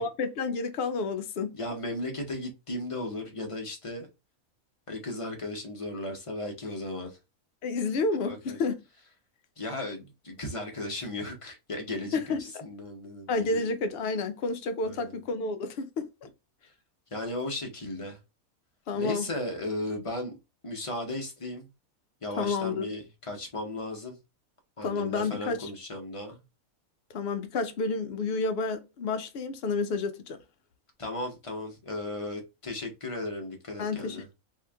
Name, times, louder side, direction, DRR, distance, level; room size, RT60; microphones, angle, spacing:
voice 1, 0.0-1.5 7.6-8.8 12.1-12.4 13.3-16.3 18.9-19.3 22.4-22.9 24.8-25.7 27.1-30.4 33.8-34.3, left 3 dB, 65° left, 0.6 m, -30 dB
voice 2, 1.5-4.1 4.9-7.2 8.2-8.6 9.6-13.6 14.8-15.2 17.1-18.2 18.9-20.4 20.6-21.7 22.2-24.2 24.8-26.4 31.0-34.2, left 1 dB, 30° left, 0.7 m, -36 dB
2.8 x 2.5 x 3.3 m
omnidirectional pair, 1.5 m